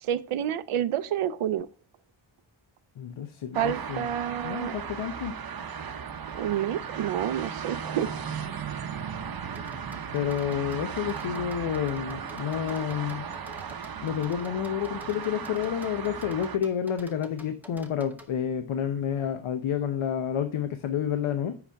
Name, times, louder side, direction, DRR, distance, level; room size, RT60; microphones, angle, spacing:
voice 1, 0.0-1.7 3.6-4.8 6.3-8.1, right 10 dB, 90° right, 0.6 m, -29 dB
voice 2, 3.0-4.1 4.4-5.4 10.1-13.3 14.0-21.6, left 9 dB, 75° left, 0.7 m, -30 dB
sound 1, 3.5-16.6, right 7 dB, 45° right, 0.7 m, -36 dB
sound 2, 9.6-18.3, equal, 5° right, 0.7 m, -49 dB
8.0 x 5.0 x 3.4 m
wide cardioid pair, 160°, 49 cm